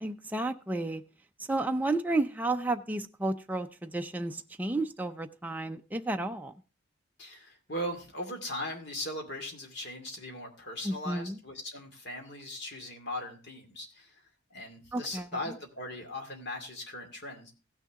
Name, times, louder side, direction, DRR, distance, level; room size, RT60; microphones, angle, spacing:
voice 1, 0.0-1.0 1.5-6.5 10.8-11.4 14.9-15.3, right 2 dB, 10° right, 0.4 m, -32 dB
voice 2, 7.2-14.2 14.5-17.5, left 1 dB, 55° left, 2.3 m, -39 dB
16.0 x 6.5 x 3.5 m
head